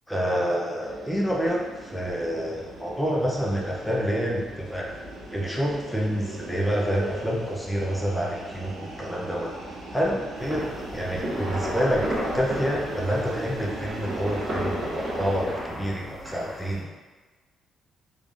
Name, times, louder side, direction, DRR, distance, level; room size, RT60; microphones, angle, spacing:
voice 1, 0.1-4.9 5.3-9.6 9.9-10.7 10.9-16.9, equal, 5° left, -3 dB, 0.6 m, -28 dB
sound 1, 0.8-15.5, right 2 dB, 85° right, 0.8 m, -39 dB
sound 2, 10.4-16.8, equal, 40° right, 1.4 m, -33 dB
3.5 x 3.3 x 2.5 m, 1.3 s
cardioid pair, 90°, 0 cm